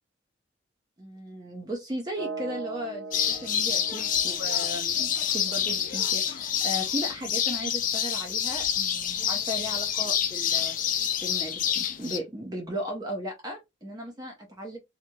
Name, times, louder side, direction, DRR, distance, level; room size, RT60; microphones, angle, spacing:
voice 1, 1.0-14.8, equal, 20° right, 0.5 m, -36 dB
sound 1, 2.2-6.1, right 4 dB, 75° right, 0.6 m, -41 dB
sound 2, 3.1-12.2, left 9 dB, 40° left, 0.4 m, -27 dB
2.9 x 2.7 x 2.2 m
head